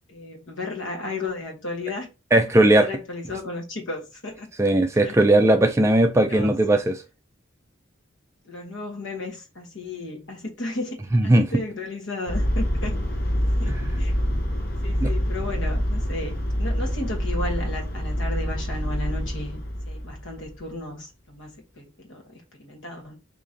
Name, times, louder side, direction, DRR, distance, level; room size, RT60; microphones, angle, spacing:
voice 1, 0.1-2.1 2.6-4.5 5.0-5.3 6.2-6.5 8.4-11.0 11.2-12.9 13.6-14.1 14.8-19.6 19.9-23.1, left 2 dB, 70° left, 1.2 m, -34 dB
voice 2, 2.3-2.9 4.6-7.0 11.1-11.5 13.7-13.8 15.0-15.1, right 1 dB, 15° right, 0.3 m, -18 dB
sound 1, 12.3-20.6, equal, 50° left, 0.7 m, -26 dB
2.9 x 2.8 x 3.7 m
head